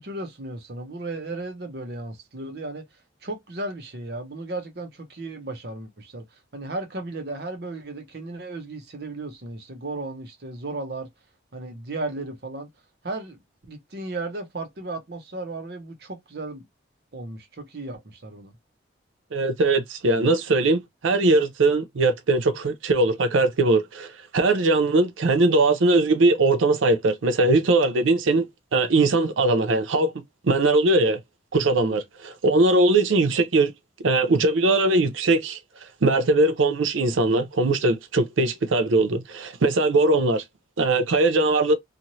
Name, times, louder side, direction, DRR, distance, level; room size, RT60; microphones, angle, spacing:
voice 1, 0.0-2.8 3.2-11.1 11.5-12.7 13.0-16.7 17.1-18.5, right 2 dB, 55° right, 0.8 m, -35 dB
voice 2, 19.3-28.5 28.7-30.1 30.4-31.2 31.5-33.7 34.0-35.6 36.0-40.4 40.8-41.7, right 2 dB, 80° right, 0.5 m, -20 dB
2.8 x 2.4 x 2.9 m
head